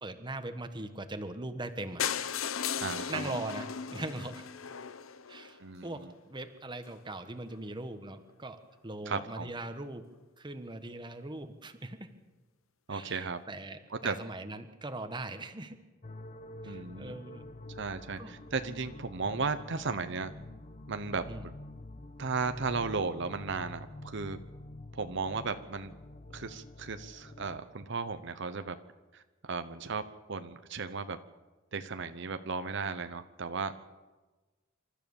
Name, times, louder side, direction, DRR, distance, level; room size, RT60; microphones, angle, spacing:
voice 1, 0.0-2.0 3.1-4.5 5.3-10.1 10.4-12.1 12.9-15.8 16.6-17.5 18.2-18.3 21.3-21.5, right 2 dB, 25° right, 9 dB, 1.3 m, -40 dB
sound 1, 2.0-5.9 6.5-6.6 6.9-7.0 7.2-7.3 7.5-7.6, left 8 dB, 85° left, 0.9 m, -36 dB
voice 2, 2.8-3.3 5.6-6.1 9.1-9.5 12.9-13.4 13.9-14.2 16.6-17.2 17.7-20.3 20.9-21.2 22.2-24.4 24.9-25.9 26.3-28.8 29.1-31.2 31.7-33.7, right 4 dB, 60° right, 10 dB, 0.9 m, -35 dB
sound 2, 16.0-27.6, left 2 dB, 40° left, 0.9 m, -47 dB
27.0 x 13.5 x 7.2 m, 1.2 s
head